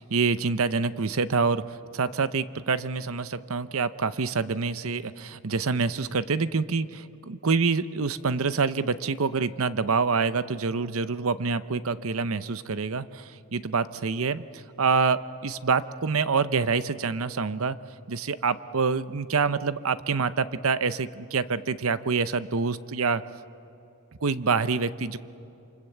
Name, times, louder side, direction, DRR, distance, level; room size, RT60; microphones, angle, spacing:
voice 1, 0.0-17.8 18.1-23.2 24.2-25.2, right 4 dB, 75° right, 14 dB, 0.8 m, -26 dB
27.5 x 25.0 x 8.0 m, 2.8 s
head